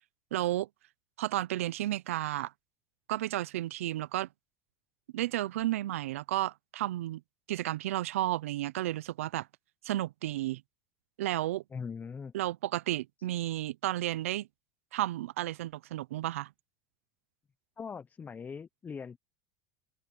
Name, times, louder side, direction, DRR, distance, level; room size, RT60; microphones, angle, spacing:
voice 1, 0.3-0.7 1.2-2.5 3.1-4.3 5.1-7.2 7.5-9.5 9.8-10.6 11.2-11.6 12.3-14.5 14.9-16.5, right 15 dB, 85° right, 0.6 m, -32 dB
voice 2, 11.7-12.3 17.8-19.2, left 6 dB, 25° left, 0.8 m, -41 dB
open air
supercardioid pair, 100°, 7 cm